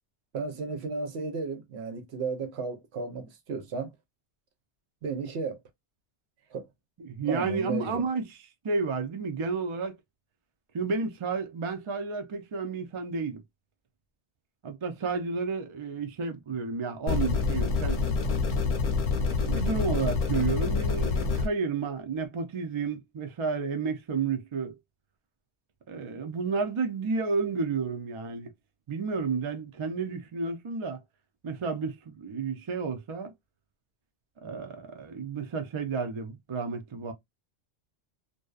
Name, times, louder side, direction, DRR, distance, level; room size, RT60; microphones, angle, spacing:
voice 1, 0.3-3.9 5.0-5.6 6.5-6.7 7.3-8.0, right 4 dB, 75° right, 0.9 m, -34 dB
voice 2, 7.0-8.3 8.6-9.9 10.7-13.4 14.6-18.0 19.4-24.8 25.9-28.5 28.9-31.0 31.4-33.3 34.4-37.1, right 4 dB, 55° right, 0.3 m, -31 dB
sound 1, 17.1-21.5, left 4 dB, 55° left, 0.7 m, -27 dB
2.6 x 2.1 x 2.3 m
omnidirectional pair, 1.2 m